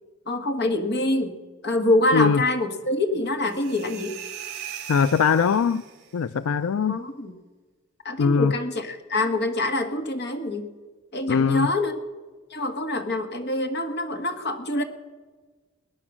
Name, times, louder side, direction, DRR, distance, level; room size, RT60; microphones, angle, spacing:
voice 1, 0.3-1.4 1.6-4.1 6.9-7.4 8.0-10.7 11.1-11.9 12.5-14.8, left 1 dB, 55° left, 1.6 m, -25 dB
sound 1, 3.5-6.2, right 10 dB, 55° right, 3.1 m, -39 dB
voice 2, 4.9-5.8 6.1-7.0 8.2-8.5 11.3-11.7, left 6 dB, 90° left, 0.4 m, -21 dB
21.0 x 10.0 x 6.1 m
head